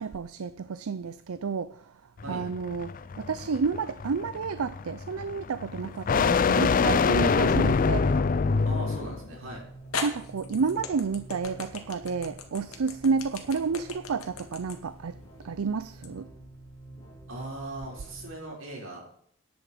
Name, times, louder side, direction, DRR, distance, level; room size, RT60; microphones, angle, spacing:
voice 1, 0.0-1.9 2.3-8.1 10.0-15.2 15.4-16.3, right 5 dB, 90° right, 14 dB, 0.5 m, -30 dB
sound 1, 2.2-9.2, left 5 dB, 40° left, 0.4 m, -25 dB
sound 2, 5.8-6.4 7.2-7.3 9.2-9.3 9.9-16.1, left 4 dB, 85° left, 2.1 m, -38 dB
sound 3, 7.5-18.3, right 1 dB, 15° left, 5.6 m, -48 dB
voice 2, 8.6-9.6 17.3-19.0, right 1 dB, 70° right, -3 dB, 6.2 m, -39 dB
13.5 x 10.5 x 5.1 m, 0.65 s
head